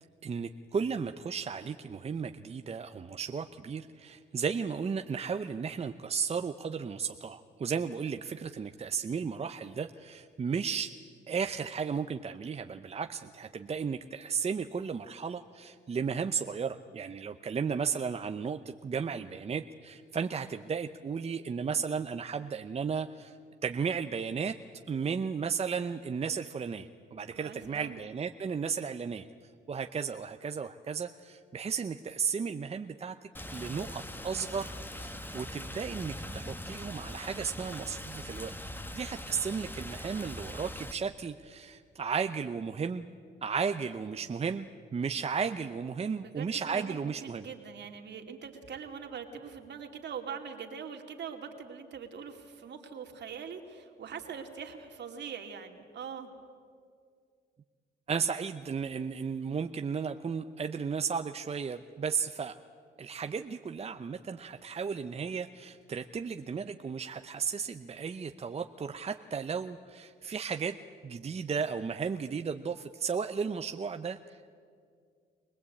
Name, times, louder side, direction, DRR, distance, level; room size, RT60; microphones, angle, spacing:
voice 1, 0.2-10.9 11.3-23.4 23.6-24.6 24.9-29.3 29.7-33.1 33.5-38.5 38.9-43.1 43.4-47.5 58.1-62.5 63.0-70.8 71.0-74.5, right 6 dB, 30° right, 7 dB, 0.7 m, -34 dB
voice 2, 27.3-28.0 46.2-56.3, right 7 dB, 60° right, 4 dB, 2.5 m, -43 dB
Rain, 33.3-40.9, left 1 dB, 10° left, 1.3 m, -42 dB
24.0 x 18.5 x 8.5 m, 2.2 s
cardioid pair, 90°, 20 cm